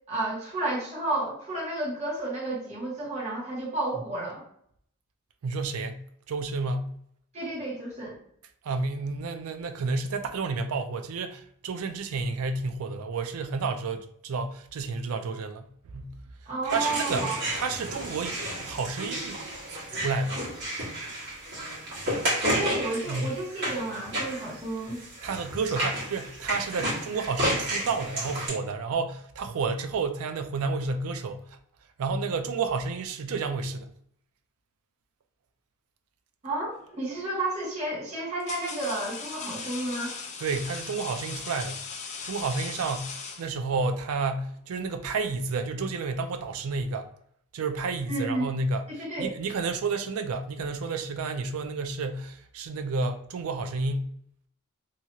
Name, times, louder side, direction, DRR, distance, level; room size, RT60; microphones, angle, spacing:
voice 1, 0.1-4.4 7.3-8.2 16.5-17.4 22.5-25.0 36.4-40.2 48.1-48.5 48.9-49.3, right 2 dB, 30° right, 1.0 m, -31 dB
voice 2, 5.4-6.9 8.6-16.1 16.6-17.3 17.5-19.4 19.7-20.4 23.1-23.3 25.2-31.6 32.0-33.9 40.4-41.8 42.2-47.1 47.5-48.9 49.2-54.1, right 4 dB, 75° right, 0.4 m, -31 dB
sound 1, 16.7-28.5, right 1 dB, 55° right, 1.4 m, -32 dB
sound 2, 36.8-37.1 37.9-43.9, left 5 dB, 30° left, 0.3 m, -39 dB
2.8 x 2.3 x 2.8 m
head